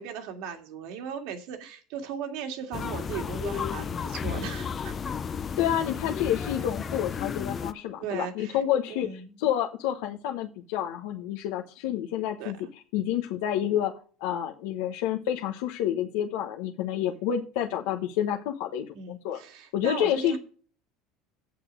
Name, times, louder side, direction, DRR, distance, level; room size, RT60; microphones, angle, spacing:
voice 1, 0.0-5.1 8.0-8.6 8.9-9.4 12.4-12.7 18.9-20.4, right 7 dB, 65° right, 2.0 m, -37 dB
sound 1, 2.7-7.7, left 7 dB, 25° left, 0.5 m, -33 dB
voice 2, 5.6-12.6 12.9-13.9 14.2-19.4 19.7-20.4, left 10 dB, 75° left, 1.1 m, -29 dB
8.2 x 6.8 x 6.2 m
cardioid pair, 140°, 0 cm